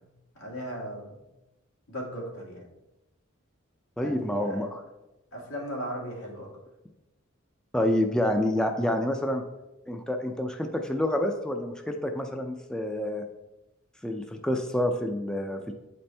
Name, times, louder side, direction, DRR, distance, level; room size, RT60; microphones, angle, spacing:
voice 1, 0.4-1.1 1.9-2.6 4.0-4.6 5.3-6.5, equal, 80° left, -2 dB, 1.9 m, -37 dB
voice 2, 4.0-4.8 7.7-9.4 9.9-13.2 14.0-15.7, left 1 dB, 5° left, 4 dB, 0.4 m, -28 dB
8.5 x 4.3 x 3.3 m, 0.98 s
head